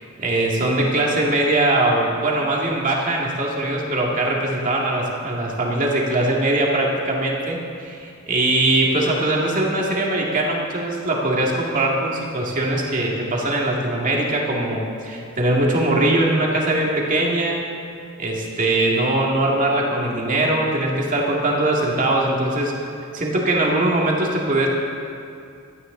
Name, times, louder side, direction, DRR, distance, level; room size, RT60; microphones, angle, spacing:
voice 1, 0.2-17.6 18.2-22.7 23.1-24.7, right 1 dB, 40° right, -2 dB, 2.1 m, -21 dB
17.0 x 12.5 x 3.9 m, 2.4 s
head